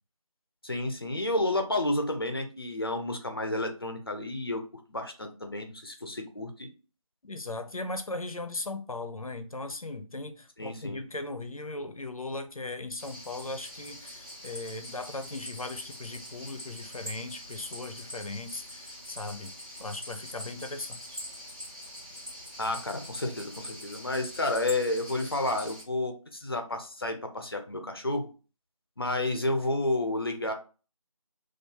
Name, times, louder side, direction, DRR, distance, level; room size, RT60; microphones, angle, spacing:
voice 1, 0.6-4.6 4.9-6.7 10.6-11.0 22.6-28.3 29.0-30.5, left 2 dB, 45° left, 0.7 m, -31 dB
voice 2, 7.2-19.5 19.8-21.2, left 2 dB, 85° left, 0.8 m, -38 dB
sound 1, 13.0-25.8, equal, 15° right, 0.8 m, -44 dB
3.5 x 2.6 x 4.3 m
figure-of-eight pair, 175°, 17 cm